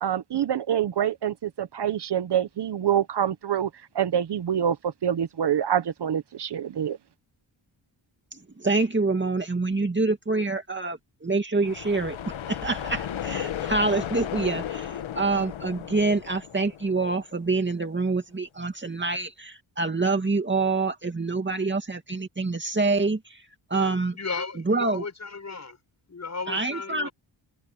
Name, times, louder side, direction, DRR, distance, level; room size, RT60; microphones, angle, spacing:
voice 1, 0.0-3.7 3.9-7.0, right 9 dB, 60° right, 1.0 m, -26 dB
voice 2, 8.3-23.4 23.7-24.2 24.7-25.1 26.5-27.1, right 3 dB, 25° right, 2.3 m, -26 dB
sound 1, 11.6-17.4, left 9 dB, 90° left, 1.9 m, -34 dB
voice 3, 24.1-25.8 26.1-27.1, left 4 dB, 35° left, 6.8 m, -35 dB
wide cardioid pair, 100°, 46 cm